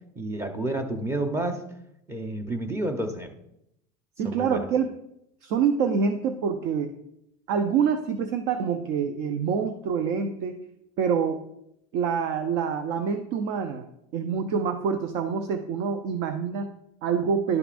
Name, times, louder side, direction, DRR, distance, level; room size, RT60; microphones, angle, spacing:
voice 1, 0.2-1.6 2.1-3.3 4.2-4.7, right 1 dB, 10° right, 5 dB, 0.8 m, -30 dB
voice 2, 4.2-4.9 5.4-6.9 7.5-10.6 11.0-11.4 11.9-13.9 14.1-17.6, right 6 dB, 60° right, 8 dB, 0.6 m, -26 dB
11.0 x 6.8 x 2.5 m, 0.81 s
supercardioid pair, 140°, 21 cm